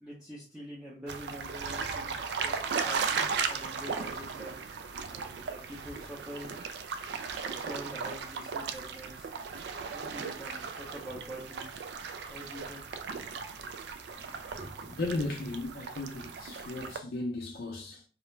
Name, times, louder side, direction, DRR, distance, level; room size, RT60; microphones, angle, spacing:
voice 1, 0.0-3.1 3.4-4.6 5.1-6.6 7.4-9.3 9.9-11.9 12.3-12.8 14.1-15.0, equal, 5° right, 0.5 m, -45 dB
sound 1, 1.1-17.0, right 5 dB, 75° right, 0.3 m, -36 dB
voice 2, 15.0-18.0, left 2 dB, 60° left, 0.4 m, -35 dB
2.4 x 2.1 x 3.0 m
head